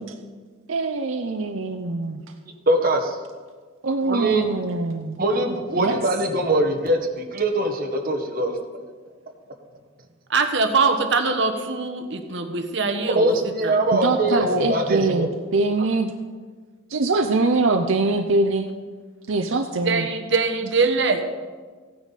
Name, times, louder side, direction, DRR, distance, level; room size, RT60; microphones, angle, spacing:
voice 1, 0.7-2.2 3.8-5.2 5.8-6.0 13.9-16.1 16.9-18.7 19.3-20.1, right 3 dB, 85° right, 5 dB, 0.7 m, -23 dB
voice 2, 2.7-3.2 4.0-4.5 5.2-8.8 13.1-15.3, right 1 dB, 45° right, 3 dB, 1.4 m, -22 dB
voice 3, 10.3-13.3 13.6-13.7 19.8-21.3, right 4 dB, 65° right, 6 dB, 1.1 m, -22 dB
15.5 x 9.5 x 4.1 m, 1.5 s
head